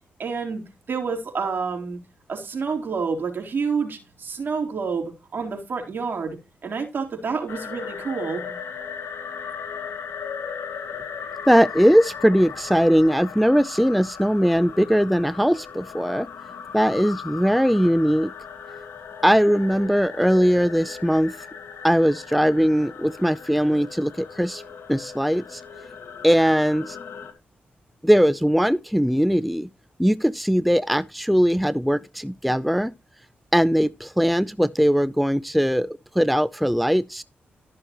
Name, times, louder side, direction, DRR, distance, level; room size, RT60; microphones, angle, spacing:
voice 1, 0.2-0.6 0.9-2.0 2.3-6.4 6.6-8.5, right 5 dB, 60° right, 3.9 m, -28 dB
sound 1, 7.5-27.3, left 6 dB, 85° left, 1.9 m, -37 dB
voice 2, 11.5-16.3 16.7-18.3 19.2-21.5 21.8-24.6 24.9-25.6 26.2-27.0 28.0-29.7 30.0-32.9 33.5-37.2, equal, ahead, 0.4 m, -20 dB
13.5 x 6.3 x 3.0 m
cardioid pair, 75°, 4 cm